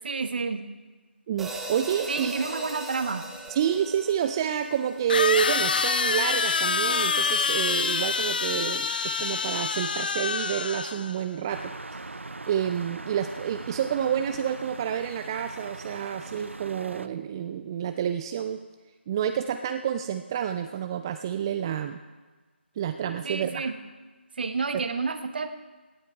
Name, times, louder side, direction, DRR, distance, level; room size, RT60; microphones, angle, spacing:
voice 1, 0.0-0.6 2.1-3.2 23.2-23.7 24.4-25.5, right 4 dB, 55° right, 9 dB, 1.1 m, -29 dB
voice 2, 1.3-2.3 3.5-11.7 12.5-18.6 19.1-22.0 22.8-23.6 24.7-24.8, right 9 dB, 20° right, 8 dB, 0.3 m, -29 dB
sound 1, 1.4-5.8, right 2 dB, 5° right, 0.9 m, -39 dB
sound 2, 3.5-3.6 5.1-11.2, left 5 dB, 50° left, 0.6 m, -26 dB
sound 3, 11.5-17.1, right 2 dB, 85° right, 0.6 m, -41 dB
17.5 x 9.0 x 4.7 m, 1.3 s
figure-of-eight pair, 155°, 6 cm